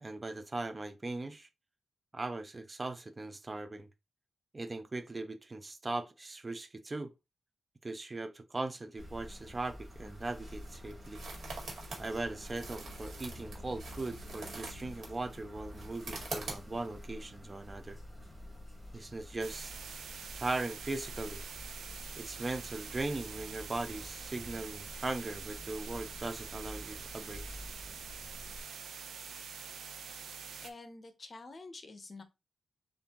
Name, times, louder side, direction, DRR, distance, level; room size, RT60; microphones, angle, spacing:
voice 1, 0.0-1.5 2.1-3.9 4.5-7.1 7.8-11.2 12.0-18.0 18.9-19.7 20.3-21.4 22.2-27.4, right 2 dB, 20° right, 0.5 m, -39 dB
sound 1, 9.0-28.6, left 1 dB, 5° right, 1.5 m, -48 dB
sound 2, 9.9-17.0, right 3 dB, 60° right, 1.9 m, -46 dB
sound 3, 19.4-30.7, right 6 dB, 90° right, 0.6 m, -46 dB
voice 2, 30.3-32.2, left 3 dB, 30° left, 0.7 m, -49 dB
6.9 x 2.5 x 2.9 m
wide cardioid pair, 175°, 0 cm